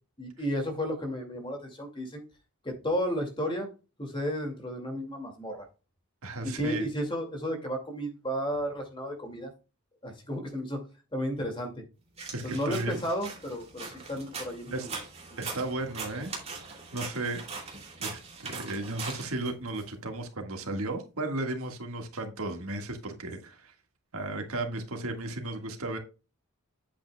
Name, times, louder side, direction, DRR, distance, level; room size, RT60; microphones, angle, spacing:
voice 1, 0.2-2.2 2.6-3.7 4.0-5.7 6.4-9.5 10.0-10.8 11.1-11.8 12.4-14.9, equal, 20° left, 2.2 m, -33 dB
voice 2, 6.2-6.9 12.3-13.0 14.7-14.9 15.4-16.3 16.6-17.4 18.0-23.7 24.1-26.0, right 2 dB, 75° right, 1.7 m, -35 dB
sound 1, 12.2-19.8, right 4 dB, 30° right, 2.7 m, -41 dB
8.5 x 8.4 x 2.2 m
head